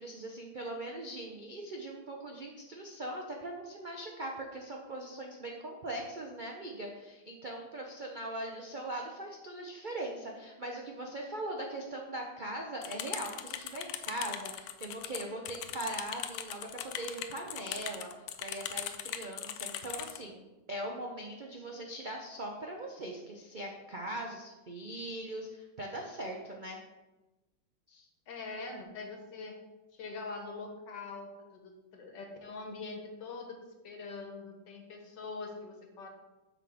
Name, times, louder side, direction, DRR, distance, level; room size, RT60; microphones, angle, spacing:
voice 1, 0.0-18.1 18.4-26.8 27.9-28.1, right 1 dB, 85° right, 0 dB, 0.4 m, -40 dB
sound 1, 12.8-20.2, left 10 dB, 80° left, 1.4 m, -40 dB
voice 2, 28.3-29.5 29.9-36.1, left 3 dB, 65° left, 2 dB, 1.8 m, -43 dB
6.5 x 6.0 x 4.9 m, 1.1 s
omnidirectional pair, 2.2 m